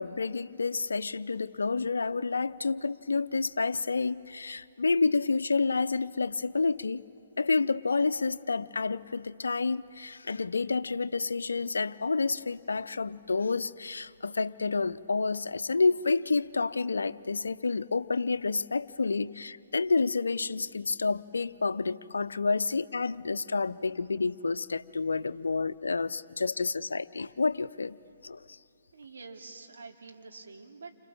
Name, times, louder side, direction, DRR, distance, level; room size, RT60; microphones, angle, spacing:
voice 1, 0.0-7.0 7.4-28.0 28.2-28.6, left 4 dB, 75° left, 0.6 m, -29 dB
voice 2, 28.9-31.1, right 4 dB, 70° right, 2.7 m, -47 dB
29.5 x 26.5 x 7.1 m
figure-of-eight pair, 130°, 0 cm